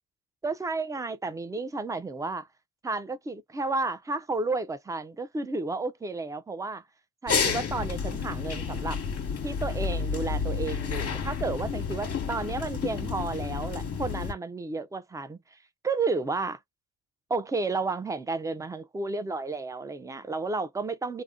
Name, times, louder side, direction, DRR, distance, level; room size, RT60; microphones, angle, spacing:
voice 1, 0.4-2.5 2.8-6.8 7.2-9.0 9.4-15.4 15.8-16.6 17.3-21.2, right 3 dB, 10° right, 0.4 m, -32 dB
sound 1, 7.3-14.3, left 6 dB, 35° left, 1.0 m, -30 dB
2.4 x 2.1 x 3.6 m
cardioid pair, 80°, 43 cm